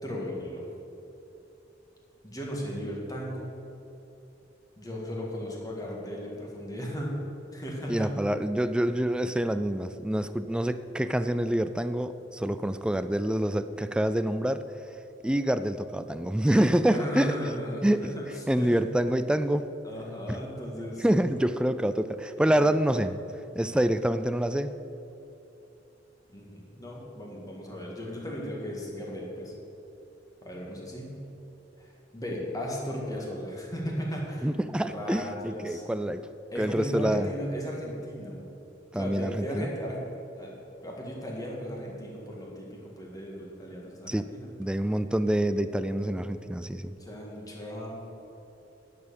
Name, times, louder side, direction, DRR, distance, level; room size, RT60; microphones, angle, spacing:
voice 1, 0.0-0.6 2.2-3.5 4.8-7.2 7.5-8.1 16.9-18.8 19.8-21.2 22.4-22.7 26.3-29.5 30.4-31.2 31.8-34.5 34.7-35.8 36.5-38.4 38.9-40.1 40.4-40.6 40.8-44.5 46.8-48.0, equal, 20° left, -2 dB, 1.9 m, -36 dB
voice 2, 7.9-14.6 15.2-17.3 17.8-18.1 18.5-19.7 20.3-20.4 21.0-23.2 23.5-24.7 34.4-36.3 36.6-37.3 38.9-39.7 44.1-44.2 44.6-46.9, right 1 dB, 5° right, 11 dB, 0.3 m, -26 dB
10.5 x 6.7 x 7.0 m, 2.8 s
head